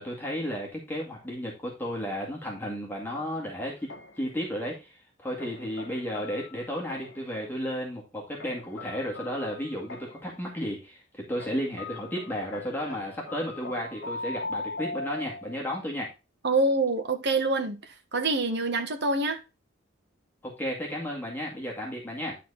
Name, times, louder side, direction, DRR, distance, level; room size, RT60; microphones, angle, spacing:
voice 1, 0.0-3.9 4.2-16.1 20.4-22.4, equal, 10° left, 2.2 m, -33 dB
sound 1, 3.1-4.4 5.4-7.4 8.4-10.4 11.4-15.7, left 2 dB, 65° left, 1.2 m, -40 dB
voice 2, 16.4-19.4, right 2 dB, 60° right, 1.5 m, -26 dB
11.0 x 4.3 x 4.1 m
head